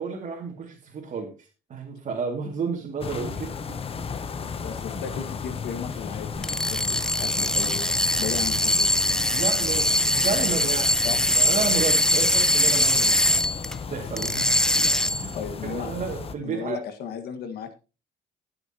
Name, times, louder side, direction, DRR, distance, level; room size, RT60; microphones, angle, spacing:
voice 1, 0.0-3.6 9.3-10.9 11.2-13.4 13.9-15.0 15.2-15.3 15.6-16.8, right 5 dB, 45° right, -3 dB, 2.4 m, -32 dB
sound 1, 3.0-16.4, left 5 dB, 35° left, 1.0 m, -35 dB
voice 2, 4.6-8.9 11.0-11.2 15.4-15.9 16.4-17.7, left 7 dB, 70° left, 8 dB, 1.7 m, -35 dB
sound 2, 6.4-13.8 14.2-15.3, left 1 dB, 5° left, 0.5 m, -22 dB
19.5 x 6.7 x 2.9 m, 0.32 s
cardioid pair, 110°, 17 cm